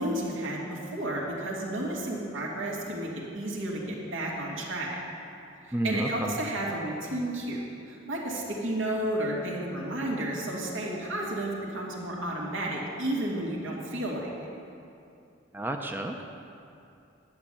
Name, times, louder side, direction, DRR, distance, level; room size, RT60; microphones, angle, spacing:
voice 1, 0.0-5.0 5.6-14.3, right 1 dB, 85° right, -3 dB, 2.6 m, -32 dB
voice 2, 5.7-6.4 15.5-16.2, right 1 dB, 10° right, 3 dB, 0.6 m, -31 dB
11.5 x 7.3 x 8.6 m, 2.6 s
head